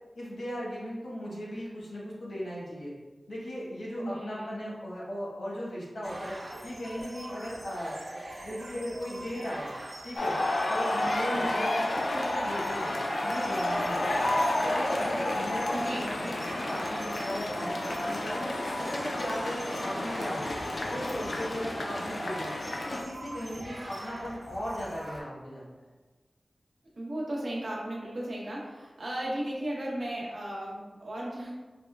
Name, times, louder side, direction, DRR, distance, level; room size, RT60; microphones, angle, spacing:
voice 1, 0.1-2.9 3.3-6.4 6.6-9.7 10.0-10.4 10.6-13.0 13.2-14.2 14.6-15.8 16.2-18.5 18.8-20.5 20.8-22.5 22.8-25.6, equal, 90° left, -6 dB, 1.1 m, -37 dB
voice 2, 4.0-4.6 11.3-11.6 15.7-16.1 27.0-31.5, right 1 dB, 70° right, -4 dB, 0.8 m, -35 dB
sound 1, 6.0-25.2, right 1 dB, 45° right, 0.5 m, -43 dB
sound 2, 10.2-23.0, left 1 dB, 70° left, 0.3 m, -31 dB
4.8 x 2.1 x 2.2 m, 1.3 s
wide cardioid pair, 80°, 0 cm